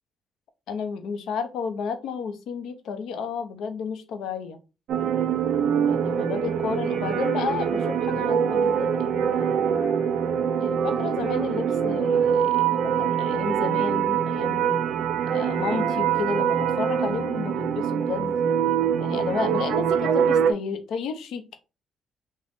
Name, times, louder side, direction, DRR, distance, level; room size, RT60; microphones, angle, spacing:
voice 1, 0.7-4.6 5.8-10.0 10.6-14.8 15.3-18.3 19.0-21.6, left 5 dB, 80° left, 9 dB, 0.6 m, -32 dB
sound 1, 4.9-20.5, right 8 dB, 80° right, 0.4 m, -24 dB
3.7 x 2.1 x 3.4 m, 0.30 s
cardioid pair, 90°, 0 cm